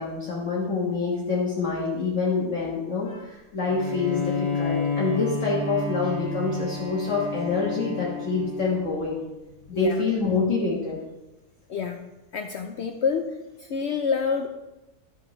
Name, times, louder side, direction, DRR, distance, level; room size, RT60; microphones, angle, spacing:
voice 1, 0.0-9.2 9.7-11.0, left 4 dB, 50° left, -5 dB, 1.7 m, -26 dB
Bowed string instrument, 3.6-9.1, left 4 dB, 35° left, 2.4 m, -30 dB
voice 2, 12.3-13.3 13.6-14.5, left 6 dB, 65° left, 5 dB, 0.6 m, -27 dB
11.5 x 7.1 x 3.1 m, 0.97 s
omnidirectional pair, 1.7 m